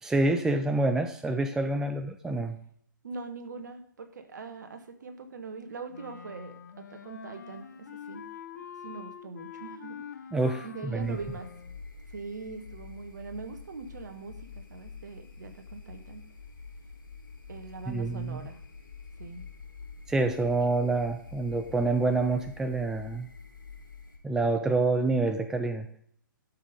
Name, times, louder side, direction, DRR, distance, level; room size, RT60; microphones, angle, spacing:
voice 1, 0.0-2.6 10.3-11.2 17.9-18.4 20.1-23.3 24.2-25.9, right 2 dB, 5° right, 7 dB, 0.6 m, -27 dB
voice 2, 3.0-8.2 8.8-10.0 10.6-11.5 12.1-16.2 17.5-18.6 19.2-19.5, right 4 dB, 60° right, 7 dB, 1.7 m, -42 dB
Wind instrument woodwind instrument, 5.9-11.8, left 7 dB, 55° left, 1.1 m, -45 dB
sound 1, 11.0-24.2, left 4 dB, 75° left, 3.7 m, -47 dB
12.5 x 6.3 x 5.3 m, 0.63 s
figure-of-eight pair, 120°, 11 cm